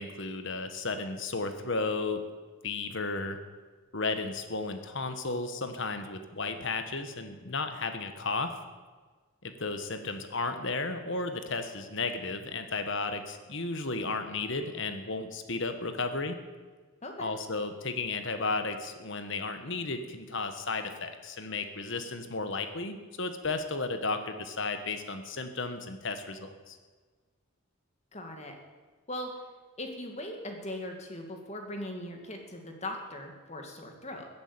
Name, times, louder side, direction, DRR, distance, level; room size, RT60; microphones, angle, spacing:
voice 1, 0.0-2.2 2.6-3.4 3.9-8.5 9.4-16.4 17.2-26.8, left 3 dB, 55° left, 8 dB, 1.5 m, -34 dB
voice 2, 28.1-28.5 29.1-29.3 29.8-34.3, left 1 dB, 30° left, 3 dB, 2.2 m, -39 dB
14.5 x 10.5 x 8.7 m, 1.4 s
head